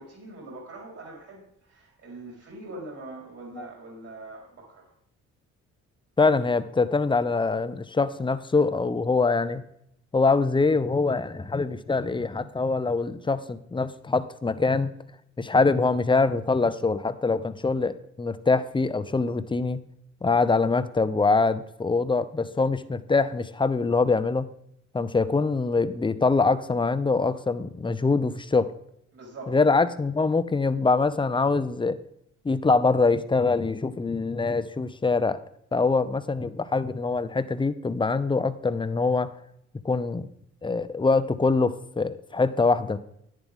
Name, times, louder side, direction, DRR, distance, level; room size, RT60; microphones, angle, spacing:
voice 1, 0.0-4.9 29.1-29.6, right 2 dB, 50° right, -1 dB, 4.3 m, -43 dB
voice 2, 6.2-9.6 10.1-14.9 15.4-19.8 20.2-24.5 24.9-28.7 29.5-32.0 32.4-35.4 35.7-39.3 39.8-40.3 40.6-43.0, left 3 dB, 15° left, 12 dB, 0.7 m, -24 dB
11.0 x 9.7 x 3.6 m, 0.74 s
cardioid pair, 90°, 30 cm